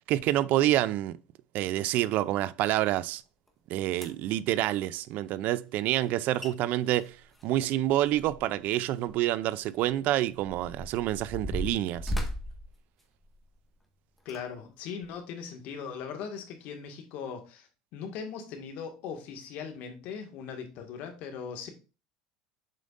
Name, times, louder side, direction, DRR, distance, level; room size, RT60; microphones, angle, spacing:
voice 1, 0.1-1.1 1.5-3.2 3.7-7.1 7.4-12.1, right 14 dB, 60° right, 0.4 m, -27 dB
sound 1, 3.5-3.6 3.9-4.4 6.1-6.2 6.4-6.5 6.9-8.7 9.0-9.1 9.8-13.6 14.2-14.4 15.0-15.1, equal, 5° left, 1.7 m, -37 dB
voice 2, 14.3-21.7, left 6 dB, 60° left, 1.8 m, -39 dB
7.5 x 5.2 x 2.5 m
supercardioid pair, 100°, 3 cm